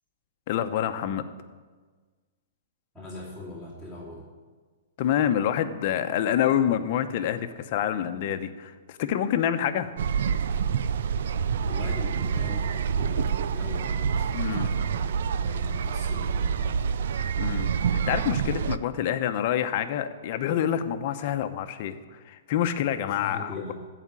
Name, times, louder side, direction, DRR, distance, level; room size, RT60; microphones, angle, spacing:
voice 1, 0.5-1.2 5.0-9.9 14.3-14.7 17.4-23.7, left 10 dB, 45° left, 8 dB, 0.9 m, -27 dB
voice 2, 2.9-4.2 11.6-16.9 23.2-23.7, left 2 dB, 5° right, -9 dB, 2.8 m, -40 dB
sound 1, 10.0-18.8, right 6 dB, 70° right, 0.5 m, -27 dB
15.0 x 5.1 x 8.3 m, 1.4 s
hypercardioid pair, 155°, 0 cm